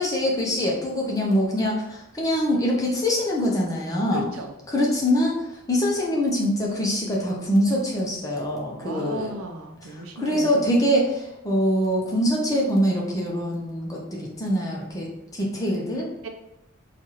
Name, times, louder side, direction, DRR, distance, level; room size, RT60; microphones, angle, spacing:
voice 1, 0.0-4.2 4.7-9.3 9.8-16.1, equal, 15° left, -3 dB, 0.6 m, -24 dB
voice 2, 4.1-4.5 8.8-10.8 16.2-16.3, right 2 dB, 70° right, 4 dB, 0.5 m, -35 dB
4.5 x 2.4 x 2.9 m, 0.89 s
head